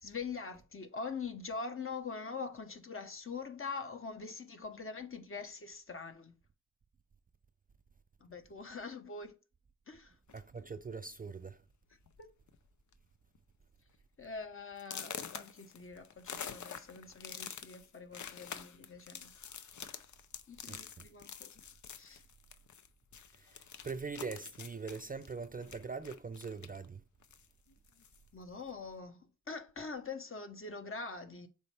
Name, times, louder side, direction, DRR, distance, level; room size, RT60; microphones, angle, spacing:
voice 1, 0.0-6.4 8.2-9.3 9.9-10.2 12.2-12.3 14.2-19.3 20.5-21.6 22.0-22.2 28.3-31.5, left 4 dB, 40° left, 1.1 m, -44 dB
sound 1, 10.3-10.6 11.4-11.5 11.9-12.2 12.5-12.9 13.4-13.5 13.9-14.0 14.8-22.9 23.1-26.9 27.2-28.3, left 7 dB, 65° left, 0.7 m, -47 dB
voice 2, 10.3-11.6 20.7-21.1 23.3-27.0, right 4 dB, 25° right, 0.4 m, -42 dB
6.9 x 4.4 x 3.4 m
wide cardioid pair, 100°, 32 cm